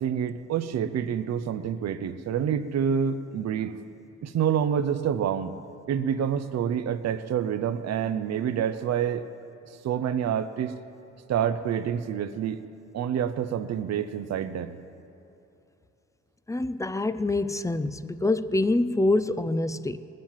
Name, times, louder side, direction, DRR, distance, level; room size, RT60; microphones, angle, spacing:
voice 1, 0.0-3.8 4.2-5.5 5.9-9.2 9.8-10.7 11.3-12.6 12.9-14.7, right 8 dB, 60° right, 12 dB, 0.7 m, -27 dB
voice 2, 16.5-20.0, left 2 dB, 10° left, 13 dB, 0.4 m, -25 dB
19.0 x 7.7 x 7.4 m, 2.8 s
cardioid pair, 90°, 30 cm